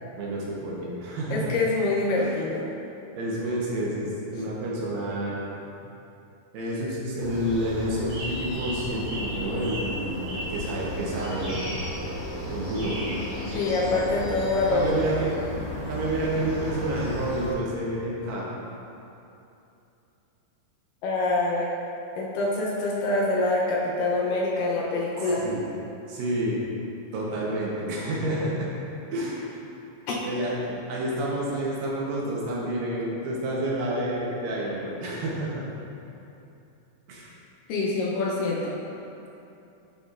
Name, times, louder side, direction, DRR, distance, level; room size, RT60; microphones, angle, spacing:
voice 1, 0.2-1.6 2.2-2.3 3.2-5.8 6.5-11.6 12.5-13.0 14.7-15.3 15.9-18.5 25.4-25.7 26.1-26.6 27.1-28.8 29.1-29.6 30.2-30.6 30.9-35.6 37.1-37.3, right 1 dB, 75° right, -4 dB, 2.5 m, -29 dB
voice 2, 1.3-2.6 13.5-14.9 21.0-21.7 22.2-25.4 30.1-30.2 37.7-38.8, left 2 dB, 80° left, -4 dB, 2.1 m, -25 dB
sound 1, 7.2-17.5, equal, 45° right, 1.9 m, -34 dB
Bird / Bell, 10.4-15.4, left 1 dB, 60° left, 2.5 m, -45 dB
11.0 x 4.2 x 2.4 m, 2.8 s
omnidirectional pair, 4.2 m